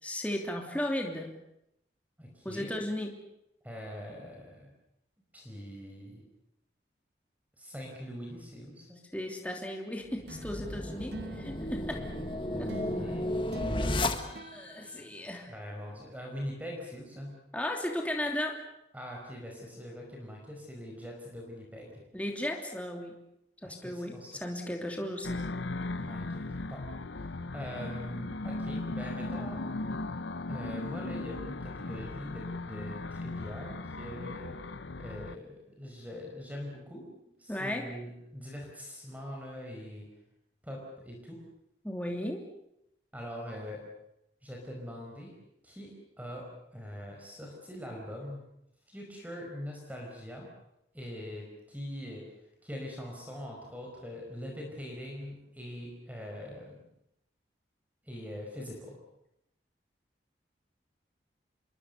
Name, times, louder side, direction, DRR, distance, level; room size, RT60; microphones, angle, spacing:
voice 1, 0.0-1.3 2.4-3.1 9.1-12.0 12.6-12.7 14.5-15.5 17.5-18.6 22.1-23.1 23.6-25.4 37.5-37.8 41.8-42.4, left 1 dB, 10° left, 1 dB, 3.0 m, -35 dB
voice 2, 2.2-2.8 3.6-4.7 5.3-6.2 7.6-9.0 12.5-14.2 15.5-17.3 18.9-21.9 23.6-24.4 26.1-26.8 27.5-29.6 30.5-34.6 35.0-37.1 37.4-40.1 40.6-41.4 43.1-43.8 44.4-45.3 45.6-45.9 46.2-48.4 48.9-50.5 50.9-52.2 52.6-56.8 58.0-59.0, equal, 10° right, 0 dB, 5.0 m, -42 dB
sound 1, 10.1-14.7, left 1 dB, 25° left, 1.5 m, -33 dB
sound 2, 10.3-15.9, right 1 dB, 60° right, 1.1 m, -47 dB
sound 3, 25.2-35.4, left 2 dB, 85° left, 0.9 m, -37 dB
28.0 x 22.5 x 6.8 m, 0.81 s
head